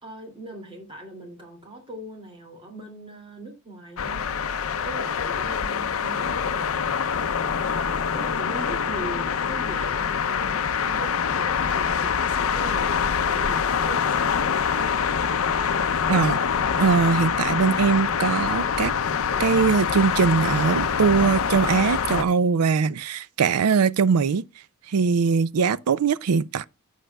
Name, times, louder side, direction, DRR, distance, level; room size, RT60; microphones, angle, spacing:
voice 1, 0.0-4.4 4.8-6.8 7.7-14.6, right 2 dB, 25° right, 2.5 m, -40 dB
sound 1, 4.0-22.2, left 6 dB, 65° left, 0.6 m, -25 dB
voice 2, 16.1-16.4 16.8-18.9 19.4-24.4 24.9-26.6, right 5 dB, 85° right, 0.4 m, -21 dB
15.0 x 6.6 x 2.2 m
head